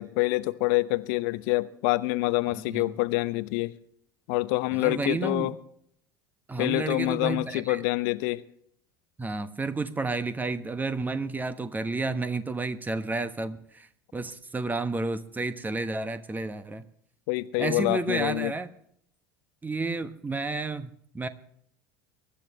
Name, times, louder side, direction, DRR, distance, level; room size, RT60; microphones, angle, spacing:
voice 1, 0.0-3.7 4.3-5.5 6.6-8.4 17.3-18.5, left 21 dB, 55° left, 0.9 m, -26 dB
voice 2, 2.5-2.9 4.7-5.5 6.5-7.8 9.2-16.8 17.6-18.7 19.6-21.3, right 3 dB, 15° right, 1.3 m, -31 dB
23.5 x 12.5 x 3.2 m
figure-of-eight pair, 70°, 12 cm